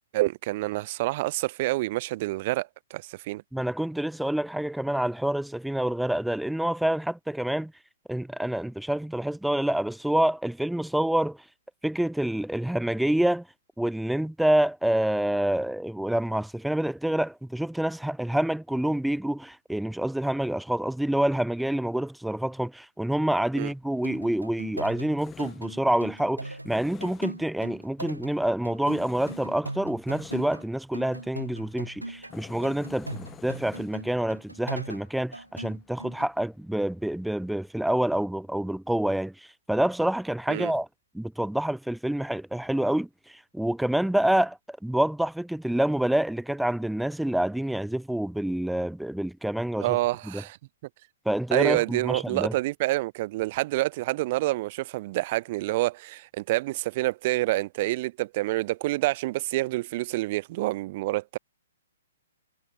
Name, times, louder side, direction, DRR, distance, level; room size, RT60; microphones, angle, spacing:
voice 1, 0.1-3.4 23.6-23.7 40.5-40.7 49.8-50.6 51.5-61.4, right 19 dB, 35° right, 4.6 m, -27 dB
voice 2, 3.5-7.7 8.1-11.4 11.8-13.5 13.8-40.9 41.1-50.0 50.3-50.4 51.3-52.5, right 1 dB, ahead, 0.6 m, -27 dB
Tools, 23.6-37.7, left 8 dB, 15° left, 5.0 m, -51 dB
sound 1, 23.9-30.7 30.9-32.4 32.6-36.3, right 1 dB, 85° right, 3.2 m, -40 dB
figure-of-eight pair, 120°, 0 cm